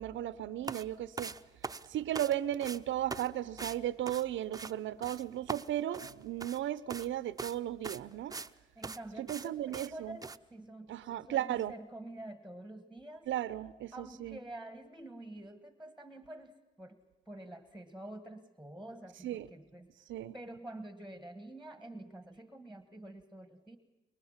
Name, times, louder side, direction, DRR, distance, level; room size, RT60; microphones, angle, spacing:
voice 1, 0.0-1.3 1.9-8.4 9.2-10.2 10.9-11.7 13.3-14.4 19.2-19.5 20.1-20.3, right 12 dB, 75° right, 0.7 m, -35 dB
sound 1, 0.6-0.8 1.2-2.3 2.6-2.8 3.1-3.3 3.6-3.8 4.1-4.7 5.0-5.2 5.5-6.6 6.9-7.1 7.4-7.6 7.8-8.5 8.8-9.0 9.3-9.5 9.7-9.9 10.2-10.4, right 4 dB, 20° right, 0.7 m, -41 dB
voice 2, 8.7-13.3 13.9-17.0 17.3-19.9 20.3-23.8, right 1 dB, 5° right, 1.5 m, -48 dB
24.5 x 22.5 x 7.3 m
cardioid pair, 90°, 20 cm